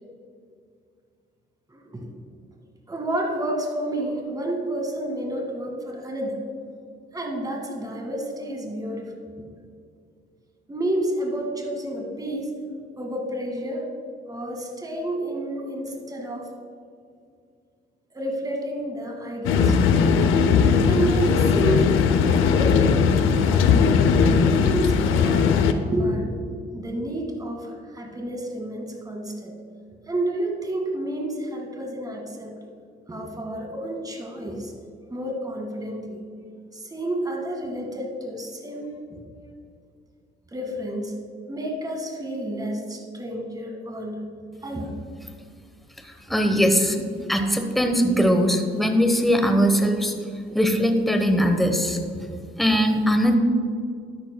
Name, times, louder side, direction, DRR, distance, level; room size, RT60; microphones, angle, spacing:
voice 1, 1.7-2.1 2.9-6.4 7.1-9.1 10.7-12.5 13.0-13.9 14.3-16.5 18.1-20.0 20.8-22.9 23.2-23.8 24.3-25.6 25.8-26.3 26.7-29.5 30.1-32.6 33.1-34.7 35.1-36.2 36.7-39.2 40.5-41.1 41.5-44.2 44.6-45.0 47.3-47.6, right 1 dB, 20° right, 1 dB, 1.9 m, -30 dB
sound 1, 19.4-25.7, left 6 dB, 90° left, 0.6 m, -19 dB
voice 2, 46.3-50.1 50.5-52.0 52.6-53.3, equal, ahead, 5 dB, 1.0 m, -20 dB
12.0 x 10.5 x 2.2 m, 2.3 s
cardioid pair, 90°, 20 cm